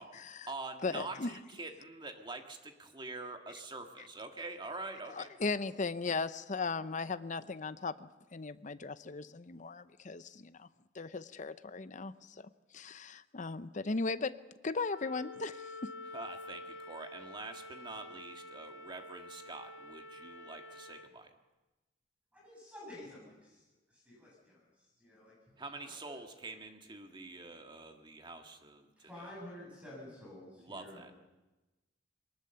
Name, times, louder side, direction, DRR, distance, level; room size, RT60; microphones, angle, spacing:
voice 1, 0.0-5.3 16.0-21.4 25.6-29.3 30.6-31.1, right 3 dB, 25° right, 5 dB, 1.7 m, -46 dB
voice 2, 0.8-1.3 5.2-10.7 10.9-12.1 12.7-14.3 14.6-15.9, left 4 dB, 40° left, 13 dB, 0.7 m, -37 dB
Wind instrument woodwind instrument, 14.8-21.1, left 2 dB, 85° left, 1.2 m, -48 dB
voice 3, 22.3-26.2 29.0-31.1, left 1 dB, 5° right, -4 dB, 7.7 m, -51 dB
22.0 x 19.5 x 6.9 m, 1.1 s
head